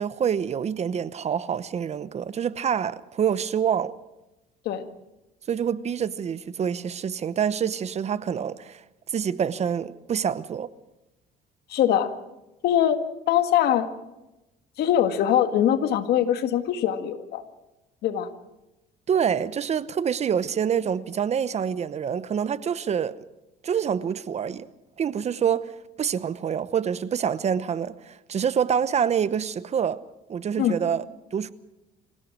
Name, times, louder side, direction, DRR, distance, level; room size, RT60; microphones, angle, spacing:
voice 1, 0.0-3.9 5.5-8.8 9.1-10.7 19.1-23.2 23.6-24.7 25.0-25.7 26.0-30.0 30.3-31.0 31.3-31.5, right 8 dB, 40° right, 0.9 m, -26 dB
voice 2, 11.7-12.1 12.6-13.0 13.3-13.9 14.8-17.4 18.0-18.3 30.6-30.8, left 10 dB, 75° left, 1.8 m, -22 dB
26.5 x 16.5 x 6.2 m
cardioid pair, 110°, 17 cm